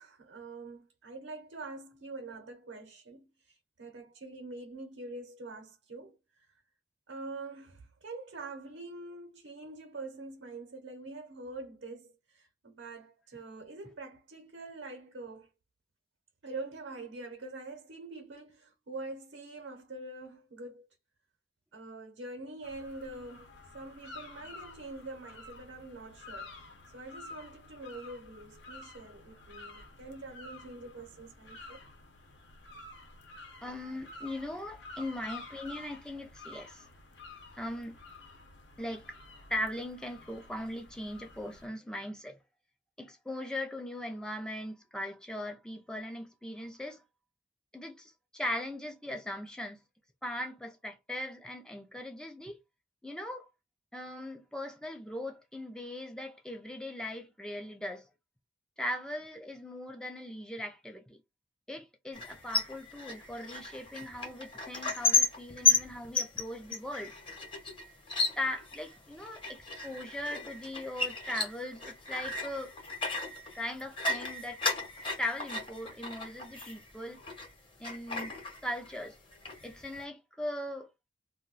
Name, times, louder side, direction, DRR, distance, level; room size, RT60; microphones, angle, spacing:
voice 1, 0.0-6.5 7.1-15.5 16.4-20.9 21.7-26.7 26.9-31.8, right 2 dB, 85° right, 0.8 m, -45 dB
sound 1, 22.6-41.7, left 2 dB, 70° left, 0.7 m, -50 dB
voice 2, 33.6-36.9 37.6-38.0 38.8-39.2 39.5-42.4 43.0-47.0 47.7-49.8 50.2-52.6 53.0-53.5 53.9-58.0 58.8-61.2 61.7-67.1 68.4-72.7 73.5-74.6 75.2-77.2 77.8-78.3 78.6-79.2 79.6-80.9, left 1 dB, 5° left, 0.3 m, -39 dB
sound 2, 62.1-77.5 77.8-79.0 79.3-80.0, left 4 dB, 30° left, 0.8 m, -33 dB
2.3 x 2.1 x 3.8 m
head